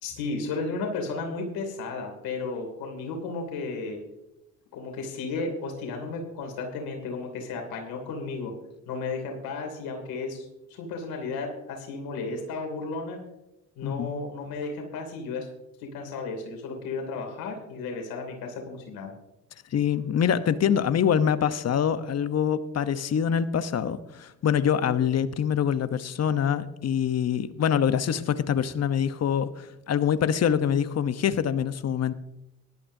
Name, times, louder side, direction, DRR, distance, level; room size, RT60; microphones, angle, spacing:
voice 1, 0.0-4.0 4.7-8.5 8.9-10.4 10.7-13.2 13.8-15.5 15.8-19.1, left 3 dB, 75° left, 2.9 m, -33 dB
voice 2, 13.8-14.1 19.7-32.1, left 8 dB, 45° left, 0.9 m, -25 dB
17.5 x 12.0 x 2.7 m
supercardioid pair, 65°, 36 cm